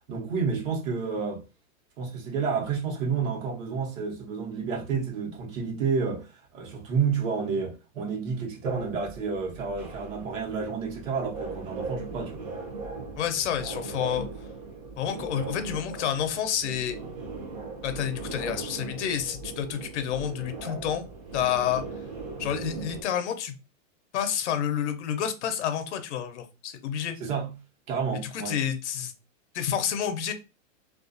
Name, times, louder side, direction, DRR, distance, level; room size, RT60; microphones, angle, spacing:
voice 1, 0.1-1.4 2.0-6.3 6.5-12.4 27.2-27.5 27.9-28.6, right 5 dB, 75° right, 1.0 m, -30 dB
sound 1, 8.6-23.0, right 3 dB, 30° right, 0.6 m, -39 dB
voice 2, 13.2-14.3 15.0-17.0 17.8-21.1 21.3-21.8 22.4-23.5 24.1-27.2 28.3-29.1 29.5-30.3, left 9 dB, 60° left, 0.6 m, -29 dB
2.3 x 2.2 x 2.5 m
supercardioid pair, 165°, 40 cm